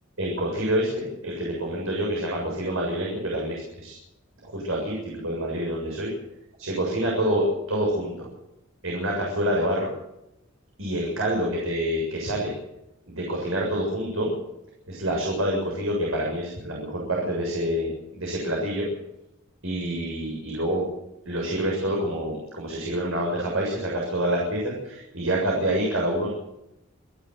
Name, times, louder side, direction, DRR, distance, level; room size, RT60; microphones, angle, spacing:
voice 1, 0.2-4.0 4.4-6.1 6.6-8.3 8.8-9.9 10.8-12.5 13.1-14.3 14.9-18.9 19.6-20.9 21.3-26.3, right 1 dB, 85° right, -2 dB, 7.2 m, -27 dB
28.0 x 12.5 x 8.0 m, 0.88 s
head